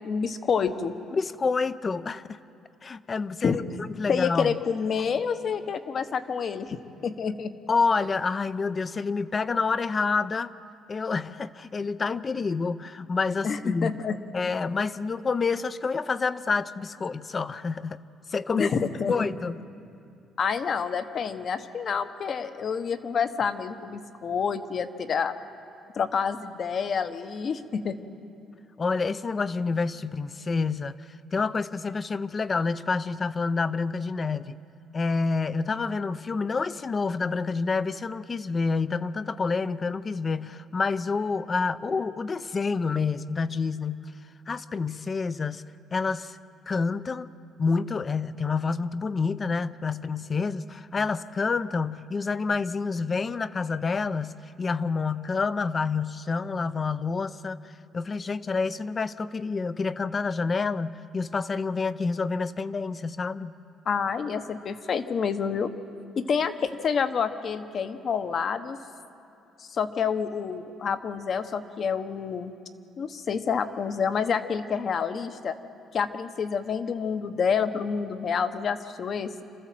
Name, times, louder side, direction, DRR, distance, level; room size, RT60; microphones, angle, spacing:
voice 1, 0.0-0.9 3.4-3.6 4.1-6.8 7.0-7.5 13.4-14.2 18.5-19.3 20.4-25.4 26.0-28.0 63.9-65.7 66.2-68.8 69.6-72.5 73.0-75.6 75.9-79.4, left 6 dB, 45° left, 10 dB, 1.1 m, -28 dB
voice 2, 1.1-2.4 2.8-3.6 4.0-4.6 7.7-10.5 10.9-13.9 14.3-18.0 18.3-18.8 19.1-19.6 28.8-31.0 31.3-34.6 34.9-44.1 44.5-45.6 45.9-46.4 46.7-47.3 47.6-57.6 57.9-63.5, left 4 dB, 30° left, 15 dB, 0.6 m, -28 dB
27.5 x 14.0 x 7.6 m, 2.6 s
cardioid pair, 120°, 0 cm